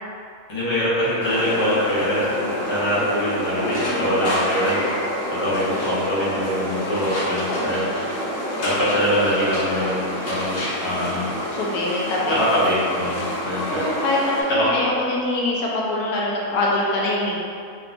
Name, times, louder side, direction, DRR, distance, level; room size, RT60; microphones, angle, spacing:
voice 1, 0.5-4.8 5.3-7.9 8.6-11.3 12.3-13.8 14.5-14.8, equal, 25° left, -10 dB, 0.6 m, -23 dB
sound 1, 1.2-14.4, equal, 60° left, 1.1 m, -28 dB
voice 2, 11.5-12.4 13.4-17.3, left 2 dB, 90° left, -4 dB, 1.2 m, -24 dB
4.0 x 2.3 x 2.5 m, 2.4 s
omnidirectional pair, 1.6 m